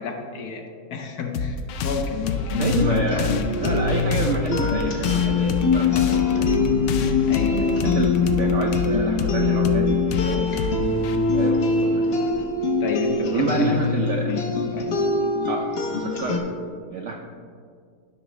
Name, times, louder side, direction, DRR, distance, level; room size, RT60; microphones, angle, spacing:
voice 1, 0.0-3.2 7.3-7.8 12.8-15.0, left 5 dB, 65° left, 3 dB, 1.2 m, -31 dB
sound 1, 1.3-12.4, left 4 dB, 85° left, 0.6 m, -29 dB
sound 2, 2.5-16.4, left 4 dB, 45° left, 0.9 m, -23 dB
voice 2, 2.6-6.5 7.8-10.5 11.3-12.0 13.3-14.4 15.5-15.7 16.0-16.5 16.9-17.1, right 3 dB, 70° right, 1 dB, 0.7 m, -28 dB
sound 3, 5.6-10.8, left 10 dB, 30° left, 0.5 m, -27 dB
12.0 x 5.8 x 3.1 m, 2.2 s
omnidirectional pair, 1.9 m